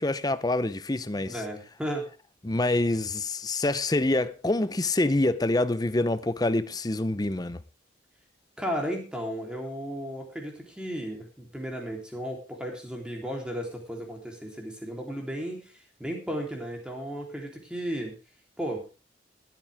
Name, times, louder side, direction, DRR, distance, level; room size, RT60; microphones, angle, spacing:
voice 1, 0.0-1.3 2.4-7.6, left 2 dB, 20° left, 0.6 m, -26 dB
voice 2, 1.1-2.1 8.6-18.2 18.6-18.8, equal, 5° right, 3.4 m, -34 dB
20.5 x 9.0 x 3.5 m
head